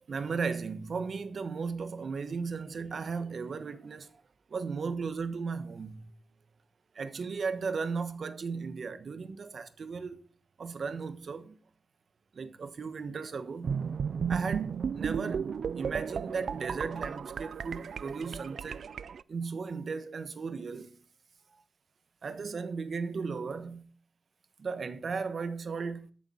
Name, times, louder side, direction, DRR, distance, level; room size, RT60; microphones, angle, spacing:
voice 1, 0.1-4.1 4.5-6.1 6.9-10.2 10.6-11.6 12.3-13.8 14.3-15.5 15.8-18.9 19.3-21.0 22.2-23.8 24.6-26.1, right 5 dB, 55° right, 1.2 m, -36 dB
sound 1, 13.6-19.2, right 6 dB, 75° right, 0.4 m, -34 dB
13.5 x 6.9 x 5.6 m
wide cardioid pair, 145°, 0 cm